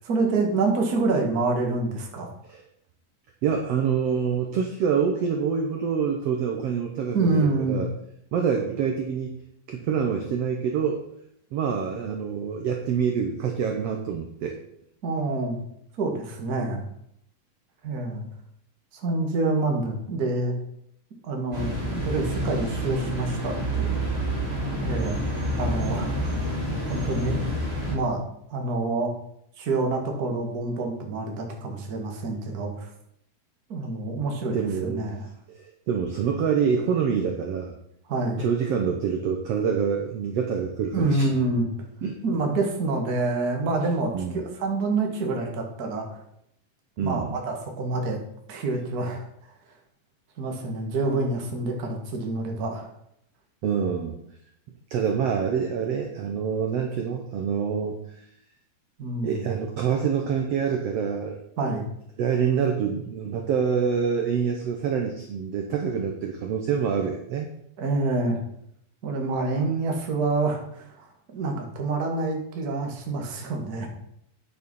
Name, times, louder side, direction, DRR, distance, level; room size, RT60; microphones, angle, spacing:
voice 1, 0.0-2.3 7.1-7.8 15.0-15.6 16.0-16.8 17.8-18.2 19.0-20.5 21.2-24.0 24.8-25.2 25.5-26.1 26.9-27.4 27.9-28.2 28.5-29.1 29.6-32.9 33.7-35.3 38.1-38.4 40.9-41.7 42.2-46.2 47.0-48.2 48.5-49.2 50.4-52.9 59.0-59.5 61.6-61.9 67.8-68.4 69.0-71.1 71.3-73.9, right 3 dB, 40° right, 2 dB, 1.5 m, -27 dB
voice 2, 3.4-7.9 8.3-9.4 9.7-11.0 11.5-14.6 34.5-35.1 35.5-37.7 38.4-41.2 42.0-42.2 44.1-44.4 47.0-47.3 53.6-54.1 54.9-57.9 59.2-61.4 62.2-67.5, right 7 dB, 70° right, 3 dB, 1.6 m, -26 dB
sound 1, 21.5-27.9, right 1 dB, 15° right, 4.1 m, -28 dB
9.2 x 6.9 x 5.5 m, 0.74 s
omnidirectional pair, 3.9 m